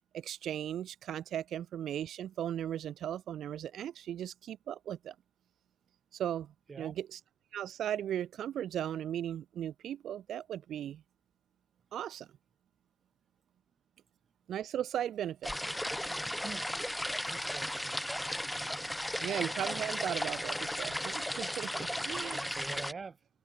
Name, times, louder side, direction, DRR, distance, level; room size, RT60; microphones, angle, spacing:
voice 1, 0.1-5.1 6.1-6.5 6.8-7.2 7.5-11.0 11.9-12.3 14.5-15.5 19.2-22.4, right 10 dB, 50° right, 0.8 m, -37 dB
sound 1, 15.4-22.9, left 1 dB, 5° left, 0.8 m, -35 dB
voice 2, 16.4-16.7 17.3-18.0 21.8-23.3, right 5 dB, 25° right, 4.2 m, -46 dB
cardioid pair, 115°, 0 cm